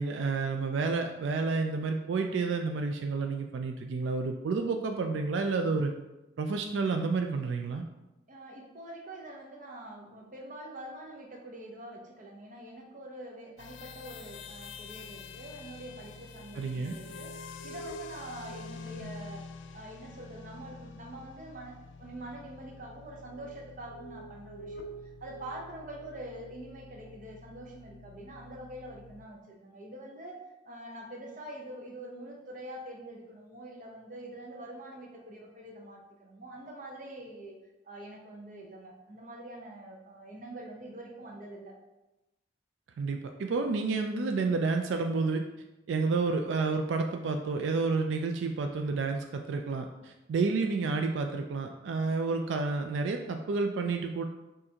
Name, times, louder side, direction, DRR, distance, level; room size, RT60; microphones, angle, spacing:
voice 1, 0.0-5.9 6.4-7.8 16.6-17.0 43.0-45.4 45.9-54.2, right 4 dB, 85° right, 5 dB, 0.3 m, -30 dB
voice 2, 8.3-19.4 19.7-24.9 25.2-37.6 37.8-41.7, right 1 dB, 45° right, 0 dB, 0.7 m, -45 dB
sound 1, 13.6-29.3, left 3 dB, 90° left, 0.3 m, -46 dB
6.2 x 2.6 x 2.8 m, 1.0 s
head